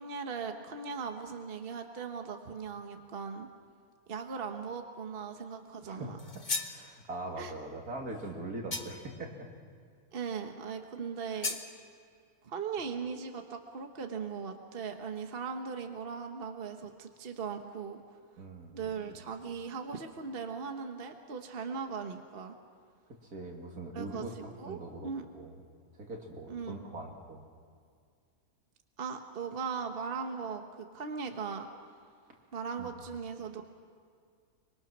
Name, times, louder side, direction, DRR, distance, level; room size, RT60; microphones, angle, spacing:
voice 1, 0.0-3.5 4.1-6.2 7.4-7.5 10.1-11.6 12.4-18.0 18.7-22.5 23.9-25.3 26.5-26.7 29.0-31.7 32.5-33.7, right 5 dB, 40° right, 5 dB, 1.3 m, -39 dB
voice 2, 5.8-9.5 18.4-18.8 19.1-19.3 23.3-25.6 25.9-27.4 32.8-32.9, right 2 dB, 75° right, 1 dB, 3.1 m, -42 dB
sound 1, 6.2-6.8 8.7-9.2 11.4-11.7, left 3 dB, 35° left, 1.2 m, -35 dB
24.5 x 23.5 x 6.1 m, 2.2 s
omnidirectional pair, 1.6 m